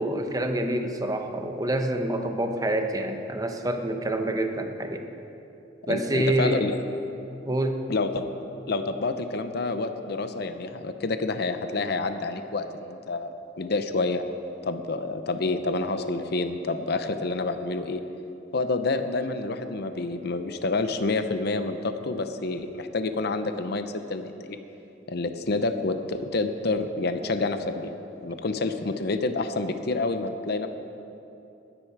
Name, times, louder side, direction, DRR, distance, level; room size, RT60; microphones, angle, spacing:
voice 1, 0.0-5.0 5.9-6.7 7.4-7.8, right 1 dB, 20° right, 5 dB, 1.0 m, -27 dB
voice 2, 5.8-6.8 7.9-8.3 8.7-13.3 13.6-14.2 14.6-18.0 18.5-24.6 25.1-27.9 28.2-30.7, left 3 dB, 60° left, 9 dB, 0.7 m, -28 dB
20.0 x 10.0 x 4.7 m, 2.8 s
head